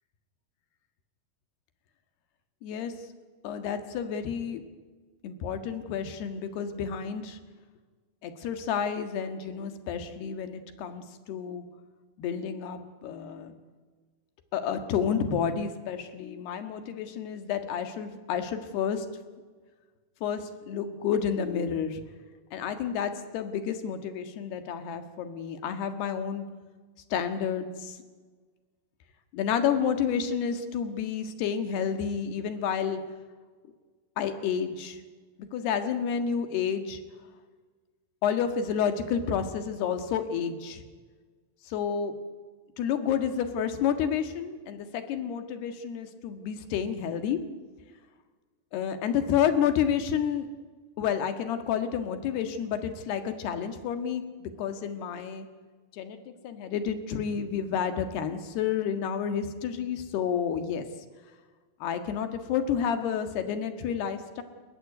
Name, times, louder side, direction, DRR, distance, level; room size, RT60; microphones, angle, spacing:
voice 1, 2.6-2.9 3.4-4.6 5.2-7.4 8.2-11.7 12.2-13.5 14.5-19.1 20.2-22.0 22.5-26.5 27.1-28.0 29.3-33.0 34.2-35.0 35.5-37.0 38.2-40.8 41.7-42.1 42.8-47.4 48.7-50.5 51.0-55.5 55.9-56.2 56.4-60.9 61.8-64.4, left 8 dB, 90° left, 8 dB, 3.8 m, -30 dB
29.0 x 14.5 x 9.7 m, 1.4 s
omnidirectional pair, 4.5 m